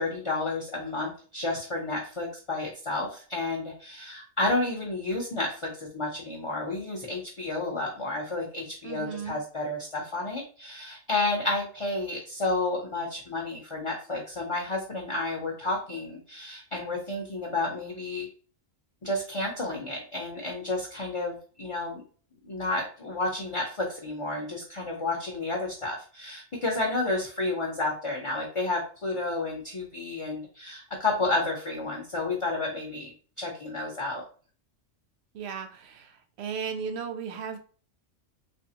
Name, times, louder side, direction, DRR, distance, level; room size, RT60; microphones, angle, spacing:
voice 1, 0.0-18.3 19.0-22.0 22.4-34.2, left 2 dB, 30° left, -1 dB, 0.6 m, -31 dB
voice 2, 8.8-9.4 35.3-36.1 36.4-37.6, right 6 dB, 65° right, 7 dB, 0.8 m, -35 dB
3.5 x 3.0 x 2.8 m, 0.40 s
omnidirectional pair, 1.4 m